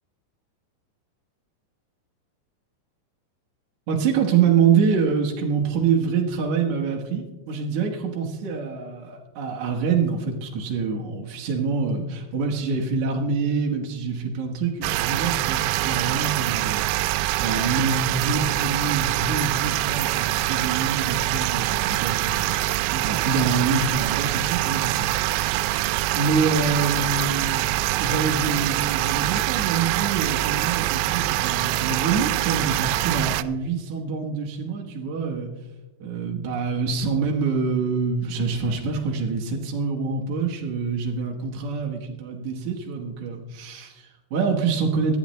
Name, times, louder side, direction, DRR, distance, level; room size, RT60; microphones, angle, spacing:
voice 1, 3.9-16.8 17.4-22.6 22.9-25.7 26.1-27.7 28.0-35.5 36.0-45.2, right 5 dB, 60° right, -1 dB, 2.1 m, -26 dB
sound 1, 14.8-33.4, right 17 dB, 85° right, 2.4 m, -24 dB
25.0 x 10.5 x 3.1 m, 1.2 s
omnidirectional pair, 5.1 m